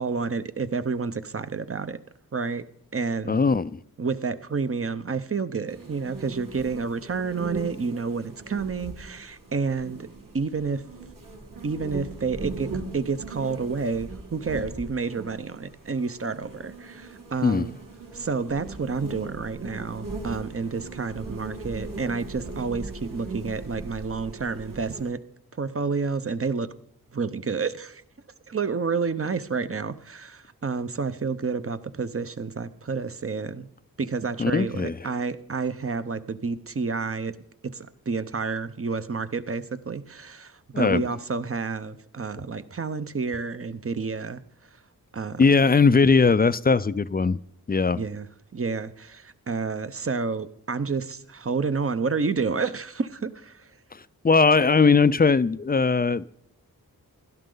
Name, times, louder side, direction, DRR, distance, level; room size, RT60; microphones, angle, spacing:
voice 1, 0.0-2.0 2.3-2.6 2.9-3.4 4.0-10.1 10.3-10.8 11.6-12.7 12.9-17.8 18.1-25.2 25.6-26.7 27.1-28.0 28.5-33.7 34.0-37.3 37.6-44.4 45.1-45.4 48.0-48.3 48.5-53.6, right 4 dB, 40° right, 0.8 m, -29 dB
voice 2, 3.3-3.8 17.4-17.7 34.4-35.1 40.7-41.0 45.4-47.4 47.7-48.0 53.9-56.2, left 4 dB, 25° left, 0.4 m, -20 dB
sound 1, 5.7-25.1, right 3 dB, 65° right, 2.8 m, -39 dB
16.5 x 12.0 x 3.9 m
wide cardioid pair, 80°, 36 cm